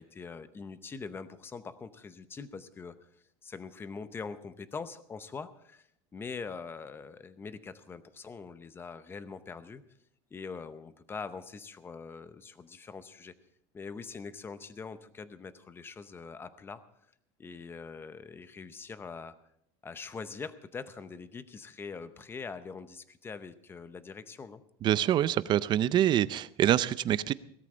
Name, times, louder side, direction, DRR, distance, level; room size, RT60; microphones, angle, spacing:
voice 1, 0.0-3.0 3.4-5.9 6.1-9.8 10.3-13.3 13.7-16.8 17.4-19.4 19.8-24.6, left 5 dB, 15° left, 13 dB, 0.7 m, -43 dB
voice 2, 24.8-27.3, right 11 dB, 30° right, 17 dB, 0.4 m, -25 dB
17.0 x 13.5 x 4.3 m, 0.72 s
cardioid pair, 160°, 15 cm